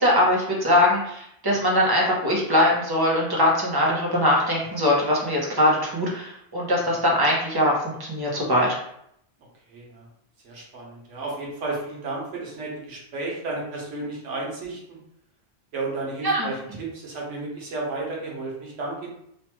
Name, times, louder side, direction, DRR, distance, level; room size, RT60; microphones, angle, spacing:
voice 1, 0.0-8.7 16.2-16.5, left 1 dB, 25° right, -3 dB, 0.7 m, -21 dB
voice 2, 9.7-10.1 10.4-15.0 15.7-19.1, right 3 dB, 85° right, -2 dB, 1.2 m, -33 dB
3.2 x 2.2 x 2.9 m, 0.74 s
omnidirectional pair, 1.2 m